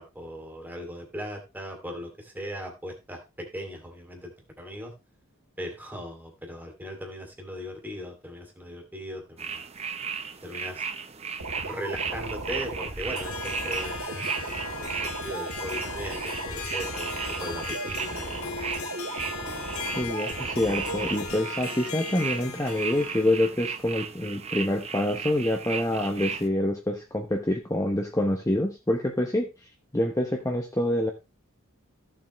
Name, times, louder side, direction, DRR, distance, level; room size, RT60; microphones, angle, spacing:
voice 1, 0.0-4.9 5.6-9.6 10.4-10.9 11.6-18.5, equal, 10° right, 2 dB, 2.6 m, -38 dB
sound 1, 9.4-26.5, right 6 dB, 30° right, 0.8 m, -36 dB
sound 2, 11.4-21.4, right 2 dB, 85° right, 2.5 m, -37 dB
Harp, 12.9-23.4, left 5 dB, 85° left, 1.8 m, -38 dB
voice 2, 20.0-29.5 29.9-31.1, left 1 dB, 15° left, 2 dB, 1.0 m, -26 dB
14.5 x 7.5 x 3.2 m, 0.26 s
head